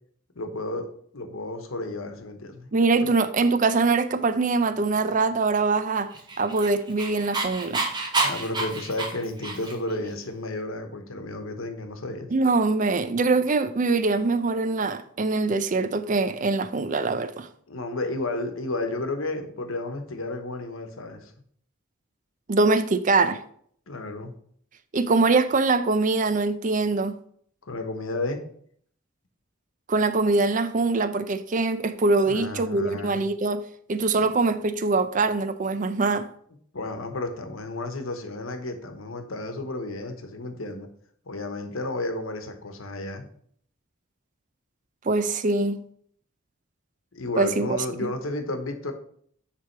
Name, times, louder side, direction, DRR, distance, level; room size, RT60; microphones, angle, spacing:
voice 1, 0.3-0.9 1.1-2.7 8.2-12.3 17.7-21.3 23.9-24.4 27.7-28.4 32.3-33.2 34.2-34.3 36.7-40.9 41.3-43.2 47.1-48.9, left 2 dB, 80° left, 1.0 m, -32 dB
voice 2, 2.7-6.1 6.4-7.9 12.3-17.5 22.5-23.4 24.9-27.2 29.9-33.6 33.9-36.3 45.0-45.8 47.4-48.1, right 3 dB, 40° right, 0.5 m, -23 dB
Dog, 6.1-9.9, right 3 dB, 20° right, 0.9 m, -29 dB
9.5 x 3.5 x 4.5 m
head